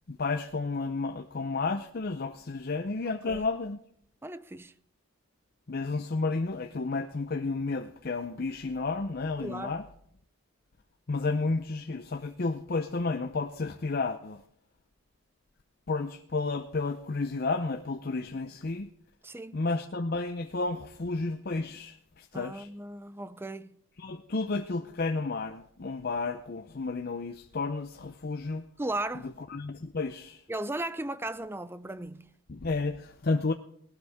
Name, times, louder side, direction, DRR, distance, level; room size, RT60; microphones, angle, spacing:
voice 1, 0.1-3.8 5.7-9.8 11.1-14.4 15.9-18.9 19.5-22.7 24.0-28.7 29.2-30.4 32.5-33.5, left 3 dB, 45° left, 0.6 m, -32 dB
voice 2, 3.0-3.5 4.2-4.7 9.4-9.8 19.2-19.6 22.3-23.8 28.8-29.3 30.5-32.3, right 2 dB, 10° right, 0.4 m, -36 dB
18.5 x 12.5 x 3.6 m
head